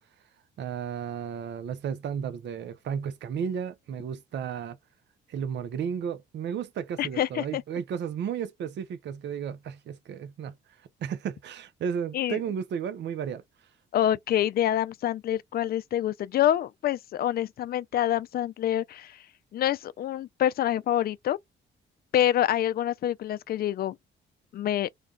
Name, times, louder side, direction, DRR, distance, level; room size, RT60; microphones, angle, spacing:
voice 1, 0.6-4.8 5.3-10.5 11.0-13.4, right 7 dB, 65° right, 0.6 m, -33 dB
voice 2, 7.0-7.6 12.1-12.4 13.9-19.2 19.5-21.4 22.1-24.0 24.5-24.9, left 11 dB, 50° left, 0.4 m, -26 dB
3.2 x 2.3 x 3.7 m
cardioid pair, 90°, 20 cm